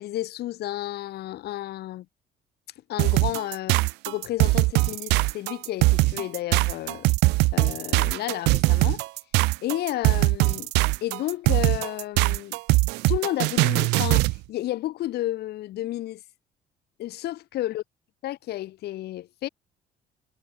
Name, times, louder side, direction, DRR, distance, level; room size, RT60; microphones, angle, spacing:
voice 1, 0.0-2.0 2.9-7.1 7.5-9.1 9.6-10.7 11.0-12.6 13.1-16.2 17.0-17.8 18.2-19.5, left 15 dB, 70° left, 2.9 m, -32 dB
sound 1, 3.0-14.4, right 23 dB, 90° right, 0.4 m, -21 dB
cardioid pair, 110°, 17 cm